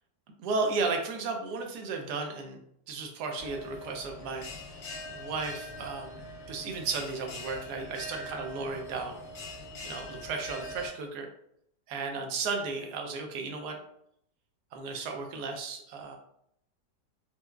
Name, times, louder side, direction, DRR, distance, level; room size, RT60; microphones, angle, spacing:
voice 1, 0.4-2.6 2.9-4.8 5.1-6.2 6.5-9.2 9.4-9.6 9.8-11.3 11.9-13.8 14.7-16.2, right 4 dB, 75° right, 3 dB, 1.1 m, -34 dB
Bell, 3.4-10.9, left 1 dB, 75° left, 1.4 m, -43 dB
4.5 x 2.0 x 2.2 m, 0.71 s
omnidirectional pair, 1.9 m